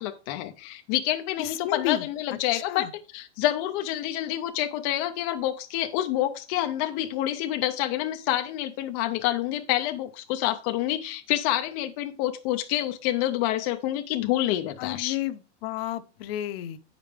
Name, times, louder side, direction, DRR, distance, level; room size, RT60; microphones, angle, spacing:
voice 1, 0.0-15.2, left 13 dB, 30° left, 0.4 m, -28 dB
voice 2, 1.4-2.1 2.5-2.9 14.8-16.8, left 12 dB, 55° left, 0.7 m, -31 dB
8.2 x 5.1 x 3.3 m
supercardioid pair, 150°, 35 cm